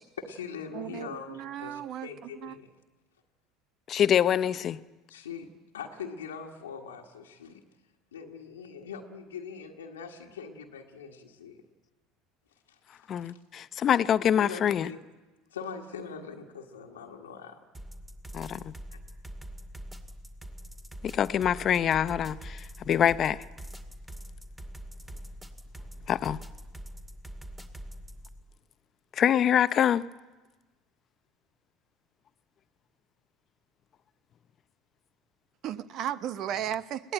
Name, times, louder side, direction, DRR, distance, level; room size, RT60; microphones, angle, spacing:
voice 1, 0.0-2.7 5.1-5.5 5.7-7.6 8.1-11.6 12.7-12.8 14.3-15.0 15.5-17.6 18.9-19.0, left 6 dB, 90° left, 1 dB, 1.6 m, -42 dB
voice 2, 0.7-2.1 2.4-2.5 35.6-37.1, right 10 dB, 55° right, 15 dB, 0.9 m, -35 dB
voice 3, 3.9-4.8 13.1-14.9 18.3-18.7 21.0-23.4 26.1-26.4 29.2-30.0, left 9 dB, 45° left, 16 dB, 0.7 m, -25 dB
sound 1, 17.7-28.4, equal, 15° right, 2.3 m, -44 dB
21.5 x 17.5 x 9.0 m, 1.2 s
hypercardioid pair, 75°, 0 cm